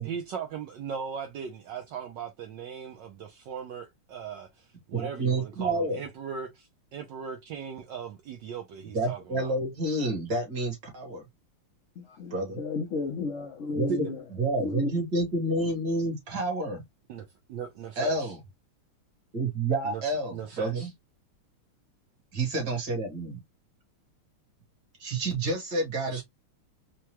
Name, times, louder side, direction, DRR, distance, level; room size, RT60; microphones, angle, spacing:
voice 1, 0.0-9.5 13.9-14.2 17.1-18.3 19.8-20.0 20.3-20.9 26.1-26.2, right 7 dB, 75° right, 1.1 m, -38 dB
voice 2, 4.9-6.0 8.9-11.2 12.3-12.6 13.7-14.1 14.3-16.8 18.0-18.4 19.3-20.9 22.3-23.4 25.0-26.2, right 2 dB, 50° right, 2.0 m, -29 dB
voice 3, 12.0-14.2 14.6-14.9, left 4 dB, 75° left, 0.6 m, -32 dB
4.6 x 2.2 x 2.9 m
omnidirectional pair, 2.4 m